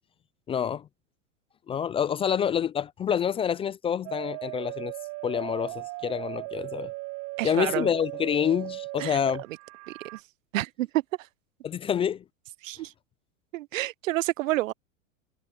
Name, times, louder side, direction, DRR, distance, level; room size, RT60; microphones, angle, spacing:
voice 1, 0.5-0.9 1.7-4.9 5.2-6.9 7.4-9.4 11.6-12.2, left 8 dB, 15° left, 0.4 m, -27 dB
sound 1, 4.0-10.2, right 25 dB, 40° right, 0.8 m, -37 dB
voice 2, 7.4-7.9 9.0-9.2 10.1-10.2 10.5-11.0 12.6-12.9 13.5-14.7, right 17 dB, 75° right, 0.7 m, -28 dB
hypercardioid pair, 110°, 40 cm